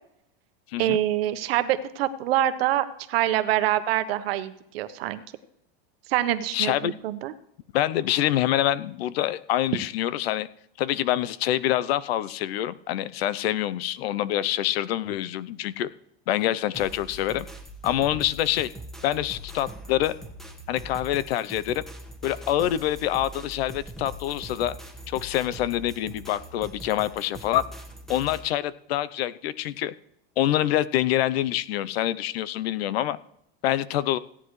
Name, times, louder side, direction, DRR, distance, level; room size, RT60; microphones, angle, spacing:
voice 1, 0.8-5.2 6.1-7.3, right 13 dB, 75° right, 11 dB, 1.1 m, -25 dB
voice 2, 6.5-6.9 7.7-10.5 10.8-15.9 16.3-17.5 17.8-18.7 19.0-20.1 20.7-21.8 22.2-24.8 25.1-27.6 28.1-29.9 30.4-33.2 33.6-34.2, left 13 dB, 75° left, 17 dB, 0.7 m, -26 dB
sound 1, 16.7-28.4, right 1 dB, ahead, 1.3 m, -42 dB
17.0 x 9.9 x 3.2 m, 0.75 s
supercardioid pair, 140°, 30 cm